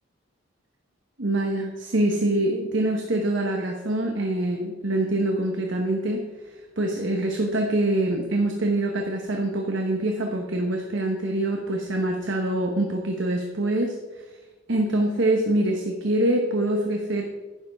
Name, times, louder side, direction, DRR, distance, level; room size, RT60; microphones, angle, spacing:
voice 1, 1.2-6.2 6.8-14.0 14.7-17.2, right 1 dB, 65° right, 2 dB, 1.1 m, -24 dB
11.0 x 10.0 x 3.6 m, 1.2 s
head